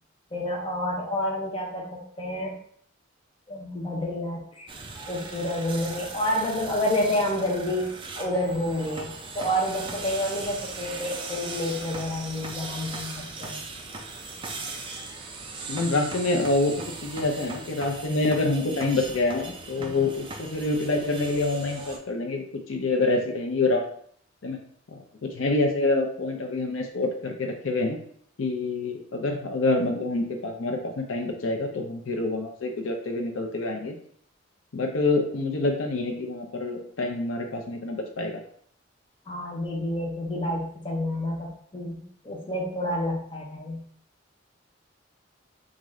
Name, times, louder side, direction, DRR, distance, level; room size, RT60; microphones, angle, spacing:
voice 1, 0.3-2.6 3.5-4.7 5.1-13.6 19.8-20.0 39.3-43.8, left 1 dB, 25° left, -1 dB, 0.6 m, -29 dB
sound 1, 4.7-22.0, right 3 dB, 25° right, 0.4 m, -39 dB
voice 2, 15.7-23.8 24.4-24.6 24.9-28.0 28.4-33.9 34.7-38.4, left 2 dB, 80° left, 4 dB, 0.5 m, -27 dB
3.6 x 2.5 x 3.1 m, 0.62 s
head